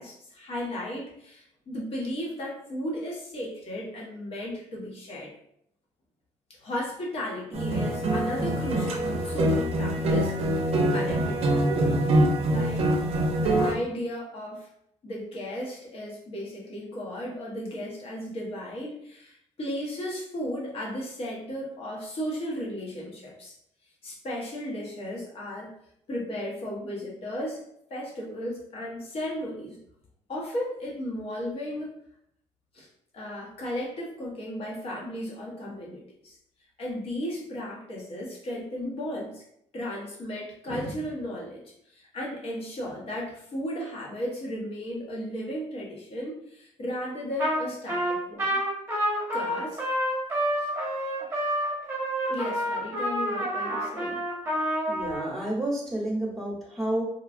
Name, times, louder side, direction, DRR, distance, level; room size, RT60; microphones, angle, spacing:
voice 1, 0.0-5.3 6.6-12.0 12.5-12.9 13.4-14.7 15.0-23.5 24.0-25.7 26.1-27.6 27.9-29.8 30.3-31.9 32.7-32.9 33.1-36.4 36.8-39.4 39.7-41.6 41.9-48.6 49.3-49.8 50.6-50.7 51.2-51.6 52.3-54.2, equal, 50° left, -3 dB, 1.0 m, -35 dB
sound 1, 7.5-13.7, right 1 dB, 50° right, 0.5 m, -24 dB
Trumpet, 47.4-47.6 47.9-55.3, equal, 20° right, 0.9 m, -28 dB
voice 2, 54.9-57.0, right 1 dB, ahead, -6 dB, 1.0 m, -30 dB
3.1 x 2.2 x 2.4 m, 0.74 s
cardioid pair, 115°, 13 cm